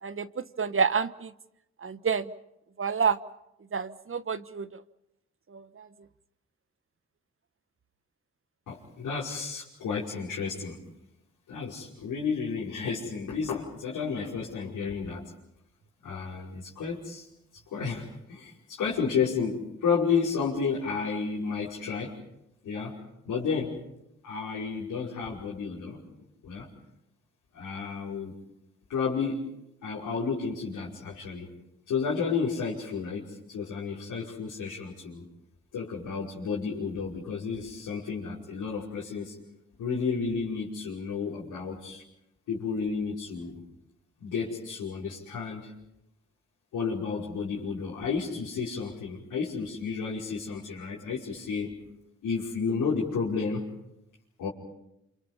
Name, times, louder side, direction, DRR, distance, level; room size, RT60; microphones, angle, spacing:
voice 1, 0.0-1.3 1.8-2.3 2.8-3.2 3.7-4.7 5.5-5.9, right 6 dB, 40° right, 14 dB, 1.3 m, -28 dB
voice 2, 8.7-10.8 11.5-15.3 16.0-17.3 17.5-22.1 22.6-23.0 23.2-23.8 24.2-26.0 26.4-26.7 27.5-28.3 28.9-29.5 29.8-31.5 31.9-35.3 35.7-39.4 39.8-42.0 42.5-43.6 44.2-45.7 46.7-51.8 52.2-53.7 54.4-54.5, left 5 dB, 75° left, -7 dB, 5.5 m, -31 dB
28.0 x 28.0 x 5.7 m, 0.85 s
hypercardioid pair, 45°, 32 cm